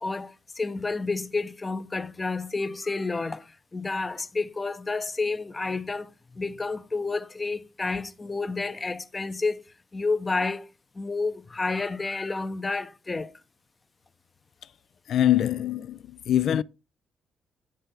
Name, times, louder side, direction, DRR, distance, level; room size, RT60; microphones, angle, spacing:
voice 1, 0.0-9.6 9.9-10.7 10.9-13.3, left 3 dB, 25° left, 0.6 m, -30 dB
voice 2, 15.1-16.0 16.3-16.6, left 11 dB, 65° left, 0.3 m, -23 dB
9.5 x 3.3 x 5.7 m
cardioid pair, 90°, 0 cm